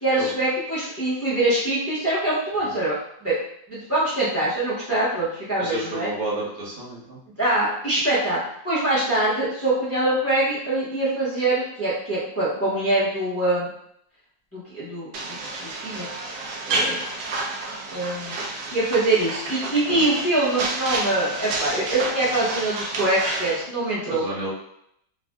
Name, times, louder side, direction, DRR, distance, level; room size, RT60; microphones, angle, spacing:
voice 1, 0.0-3.4 3.7-6.1 7.4-8.4 8.6-13.7 14.5-16.3 16.7-17.0 17.9-18.4 18.7-24.2, right 2 dB, 20° left, -10 dB, 0.3 m, -24 dB
voice 2, 5.6-7.2 19.9-20.0 24.1-24.5, right 2 dB, 55° right, -6 dB, 1.3 m, -31 dB
sound 1, 15.1-23.6, right 2 dB, 70° right, 1.0 m, -30 dB
3.3 x 2.5 x 2.2 m, 0.72 s
omnidirectional pair, 2.0 m